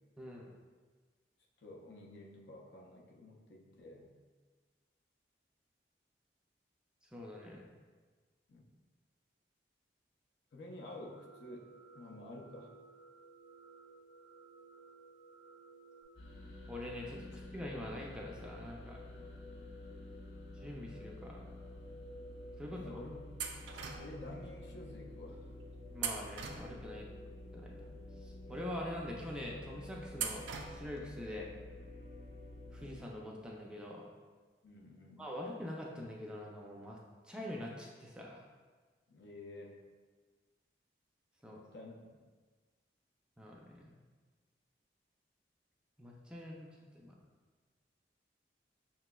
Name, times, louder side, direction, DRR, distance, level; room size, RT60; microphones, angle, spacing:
voice 1, 0.2-0.5 7.1-7.6 16.7-17.3 17.5-19.0 20.6-21.6 22.6-22.8 25.9-27.1 27.5-30.4 30.7-31.5 32.7-34.0 35.2-37.0 37.3-38.4 41.4-41.6 43.4-43.9 46.0-46.7 46.9-47.2, left 1 dB, 5° right, -2 dB, 0.3 m, -44 dB
voice 2, 1.6-4.1 8.5-8.7 10.5-12.7 22.7-23.2 24.0-25.5 34.6-35.2 39.1-39.8 41.5-42.0, left 1 dB, 70° left, 1 dB, 0.5 m, -50 dB
sound 1, 10.8-16.0, right 4 dB, 35° left, 0.9 m, -58 dB
sound 2, 16.2-33.0, left 1 dB, 85° left, 0.9 m, -50 dB
sound 3, 23.4-24.3 26.0-27.1 30.1-31.1, right 7 dB, 85° right, 0.4 m, -41 dB
5.7 x 3.0 x 2.2 m, 1.4 s
head